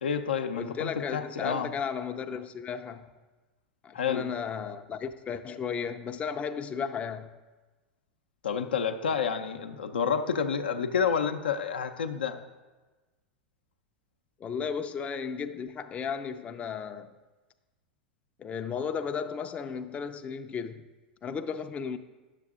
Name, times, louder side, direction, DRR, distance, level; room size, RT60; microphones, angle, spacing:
voice 1, 0.0-1.7 3.9-4.2 8.4-12.4, left 7 dB, 85° left, 0.6 m, -29 dB
voice 2, 0.5-3.1 3.8-7.3 14.4-17.1 18.4-20.9 21.2-22.0, left 6 dB, 25° left, 0.4 m, -34 dB
9.9 x 6.7 x 3.6 m
hypercardioid pair, 95°, 5 cm